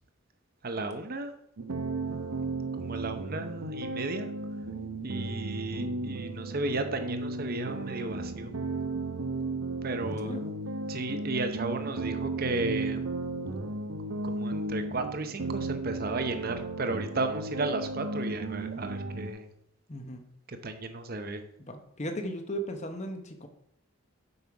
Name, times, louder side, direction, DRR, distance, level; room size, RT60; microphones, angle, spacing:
voice 1, 0.6-1.3 2.1-2.5 2.7-4.3 5.0-8.5 9.8-10.5 10.9-13.1 14.2-19.5 20.5-21.4, right 2 dB, 45° right, 8 dB, 0.7 m, -34 dB
sound 1, 1.6-19.3, right 3 dB, 80° right, 0.8 m, -35 dB
voice 2, 19.9-20.2 21.6-23.5, equal, 30° left, 6 dB, 0.9 m, -36 dB
8.0 x 5.6 x 4.7 m, 0.72 s
head